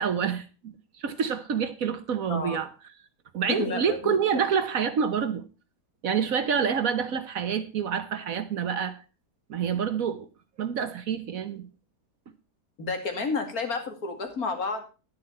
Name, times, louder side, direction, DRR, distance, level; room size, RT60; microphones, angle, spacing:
voice 1, 0.0-2.7 3.3-5.4 6.0-9.0 9.5-10.3 10.6-11.7, right 7 dB, 60° right, 1.3 m, -27 dB
voice 2, 3.5-4.5 12.8-14.8, left 4 dB, 60° left, 2.6 m, -31 dB
11.0 x 9.8 x 4.3 m
omnidirectional pair, 1.7 m